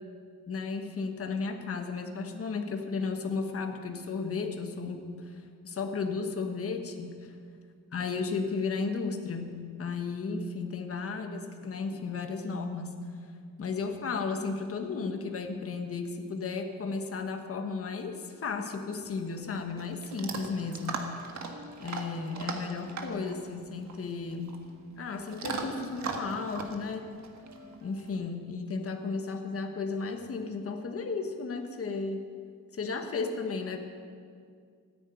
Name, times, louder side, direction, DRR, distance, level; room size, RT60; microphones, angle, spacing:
voice 1, 0.5-7.3 7.9-13.0 13.6-21.1 21.8-24.5 25.0-27.1 27.8-32.2 32.7-33.8, left 4 dB, 45° left, 5 dB, 1.4 m, -34 dB
Chewing mastication / Dog, 19.0-28.1, right 4 dB, 60° right, 1.6 m, -40 dB
14.0 x 10.0 x 9.2 m, 2.1 s
wide cardioid pair, 165°, 32 cm